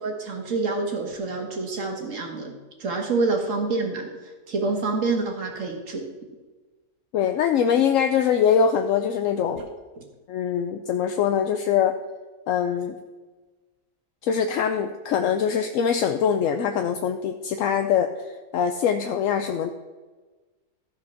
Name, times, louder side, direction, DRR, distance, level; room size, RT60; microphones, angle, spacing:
voice 1, 0.0-6.1 9.6-9.7 10.0-10.1, right 3 dB, 55° right, 2 dB, 1.9 m, -27 dB
voice 2, 7.1-9.6 10.3-12.0 12.5-13.0 14.2-18.1 18.5-19.7, left 8 dB, 70° left, 6 dB, 0.8 m, -23 dB
14.0 x 4.8 x 5.8 m, 1.3 s
omnidirectional pair, 1.7 m